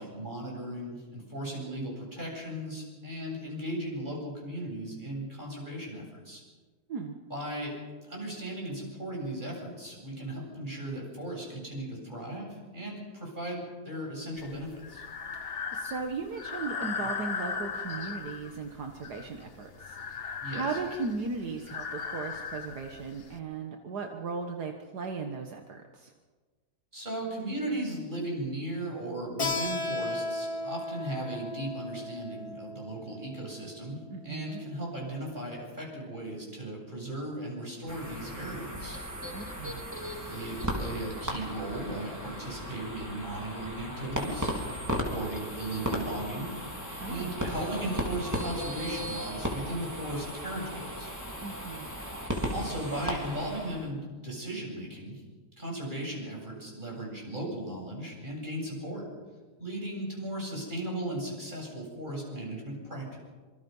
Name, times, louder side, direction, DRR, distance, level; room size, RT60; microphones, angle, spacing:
voice 1, 0.0-6.4 7.3-15.0 20.4-20.8 26.9-39.0 40.3-44.5 44.9-46.5 47.1-51.1 52.5-55.2 55.6-59.1 59.6-63.2, right 1 dB, 30° right, -1 dB, 8.3 m, -37 dB
Breathing, 14.4-23.4, left 5 dB, 40° left, 1.2 m, -38 dB
voice 2, 15.4-26.1 34.1-34.6 39.3-39.9 47.0-47.3 51.4-51.9, right 4 dB, 75° right, 4 dB, 2.0 m, -37 dB
Keyboard (musical), 29.4-34.7, left 2 dB, 70° left, 3.3 m, -36 dB
sound 1, 37.9-53.9, equal, 10° right, 3.6 m, -36 dB
26.0 x 26.0 x 5.5 m, 1.4 s
omnidirectional pair, 1.7 m